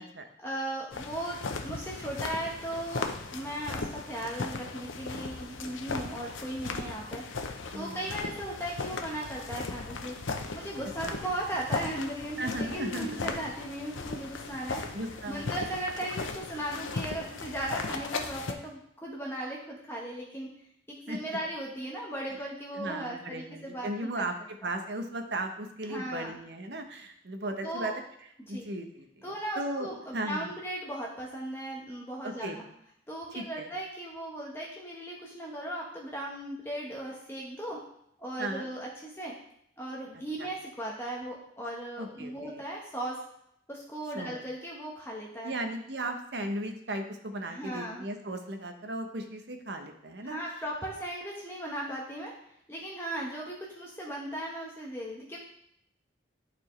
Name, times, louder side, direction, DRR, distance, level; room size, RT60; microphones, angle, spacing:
voice 1, 0.4-1.4 1.6-3.1 3.3-10.1 10.5-15.0 15.3-20.5 20.9-24.3 24.6-24.7 25.9-26.4 27.6-27.9 28.5-28.7 29.2-32.7 33.1-37.8 38.2-39.3 39.8-43.2 43.7-45.5 47.5-48.0 50.2-52.3 52.7-55.4, right 1 dB, 10° left, -3 dB, 1.1 m, -37 dB
sound 1, 0.9-18.5, left 3 dB, 85° left, 0.7 m, -37 dB
voice 2, 7.7-8.1 11.1-11.2 12.4-13.3 14.9-15.6 21.1-21.2 22.7-27.9 28.5-29.3 29.6-30.5 32.2-32.6 33.3-33.7 38.4-38.7 40.4-40.5 42.0-42.6 44.1-44.4 45.4-50.4, right 1 dB, 60° right, 6 dB, 0.9 m, -36 dB
11.5 x 4.4 x 3.2 m, 0.72 s
head